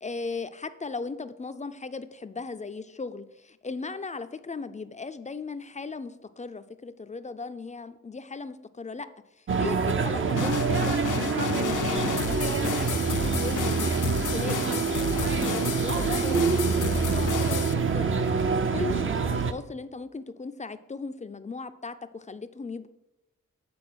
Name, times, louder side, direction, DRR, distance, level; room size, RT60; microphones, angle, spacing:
voice 1, 0.0-9.1 9.6-13.9 14.3-17.6 17.9-18.4 18.7-22.9, left 4 dB, 25° left, 11 dB, 0.4 m, -37 dB
sound 1, 9.5-19.5, right 5 dB, 40° right, 0.5 m, -26 dB
sound 2, 10.4-17.7, left 7 dB, 75° left, 0.6 m, -32 dB
8.6 x 4.6 x 6.1 m, 0.93 s
wide cardioid pair, 145°, 31 cm